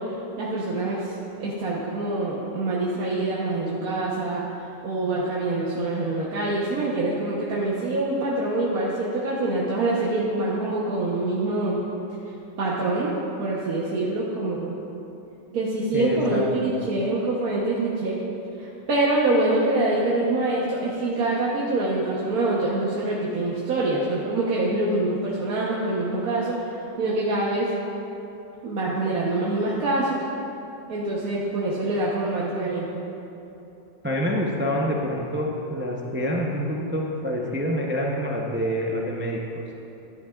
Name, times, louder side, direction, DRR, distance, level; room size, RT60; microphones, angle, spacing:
voice 1, 0.0-11.8 12.3-14.8 15.5-18.2 18.6-27.7 28.6-30.2 30.9-33.1, right 2 dB, 75° right, -5 dB, 1.5 m, -25 dB
voice 2, 15.9-16.5 34.0-39.4, equal, 15° right, -2 dB, 0.4 m, -26 dB
13.0 x 10.5 x 2.4 m, 2.9 s
omnidirectional pair, 1.6 m